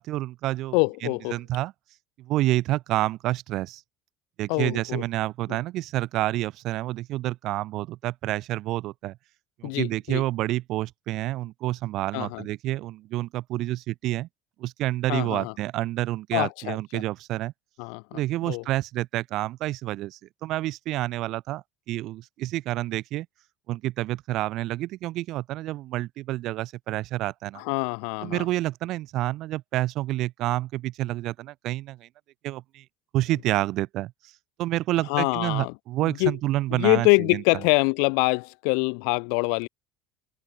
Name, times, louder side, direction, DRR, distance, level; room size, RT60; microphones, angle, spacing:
voice 1, 0.0-1.7 2.2-3.8 4.4-9.2 9.6-14.3 14.6-17.5 18.1-23.3 23.7-27.6 28.2-32.1 32.4-32.8 33.1-34.1 34.6-37.4, right 16 dB, 50° right, 5.2 m, -29 dB
voice 2, 0.7-1.4 4.5-5.0 9.6-10.2 12.1-12.4 15.1-15.5 16.3-17.0 17.8-18.2 18.4-18.6 27.6-28.4 35.1-35.7 36.0-36.3 36.7-39.7, left 40 dB or more, 75° left, 1.0 m, -25 dB
cardioid pair, 150°, 0 cm